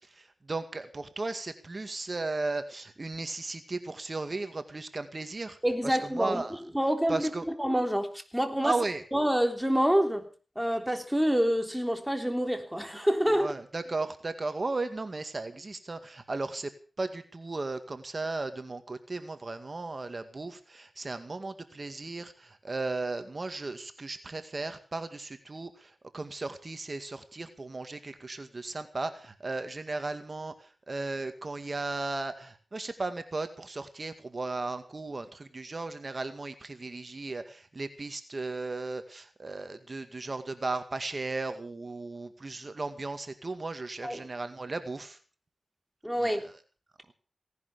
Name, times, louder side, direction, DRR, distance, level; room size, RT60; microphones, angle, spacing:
voice 1, 0.1-5.6 5.8-6.6 7.1-7.5 8.6-9.0 13.3-16.7 17.0-45.2 46.2-46.5, right 3 dB, 45° right, 2.1 m, -36 dB
voice 2, 5.6-6.4 6.7-7.3 7.6-8.7 9.1-10.3 10.5-13.5 44.0-44.2 46.0-46.4, equal, 5° right, 3.4 m, -27 dB
18.0 x 10.5 x 6.8 m
cardioid pair, 55°, 0 cm